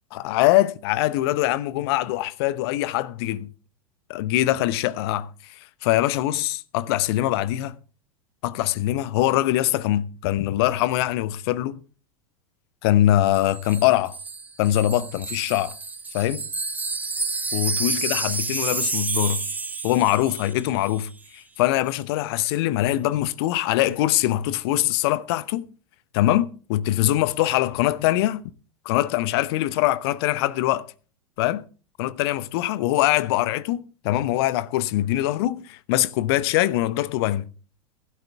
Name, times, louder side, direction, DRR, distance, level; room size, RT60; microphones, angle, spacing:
voice 1, 0.1-3.5 4.1-5.3 5.8-7.8 8.4-11.8 12.8-14.1 14.6-15.7 16.1-16.5 17.5-19.4 19.8-25.7 26.1-28.4 28.8-30.9 31.4-31.6 32.0-37.4, left 14 dB, 45° left, 0.9 m, -23 dB
Wind chime, 13.3-20.6 20.8-21.0, right 3 dB, 10° right, 1.2 m, -30 dB
16.0 x 12.0 x 3.5 m
figure-of-eight pair, 90°, 18 cm